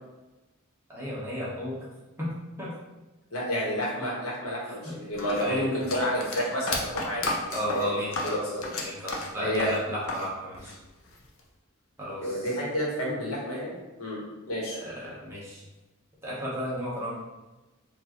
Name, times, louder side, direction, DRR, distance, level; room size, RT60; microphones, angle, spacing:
voice 1, 0.9-1.8 2.2-2.3 2.6-2.7 4.8-4.9 5.4-5.6 7.5-8.4 8.8-10.8 12.0-12.5 14.8-15.6 16.2-17.1, equal, 10° right, -7 dB, 1.1 m, -33 dB
voice 2, 3.3-7.9 8.3-8.6 9.4-9.7 12.2-14.2 14.5-14.8, equal, 90° left, -5 dB, 1.4 m, -30 dB
sound 1, 5.2-10.3 10.5-11.4, left 3 dB, 70° left, 0.6 m, -33 dB
4.4 x 2.6 x 3.0 m, 1.1 s
head